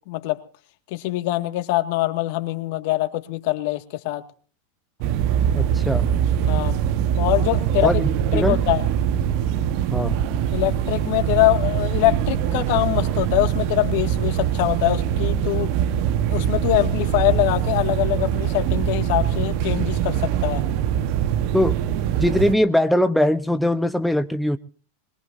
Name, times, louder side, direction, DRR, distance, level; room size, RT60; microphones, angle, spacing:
voice 1, 0.1-0.4 0.9-4.2 6.5-6.8 7.2-8.0 8.3-8.8 10.5-15.7 16.3-20.6, left 17 dB, 60° left, 2.1 m, -23 dB
sound 1, 5.0-22.5, right 9 dB, 55° right, 1.3 m, -23 dB
voice 2, 5.5-6.1 7.8-7.9 8.3-8.6 9.9-10.2 21.5-21.7 22.2-24.6, left 1 dB, ahead, 1.0 m, -20 dB
23.0 x 21.0 x 2.8 m
hypercardioid pair, 105°, 0 cm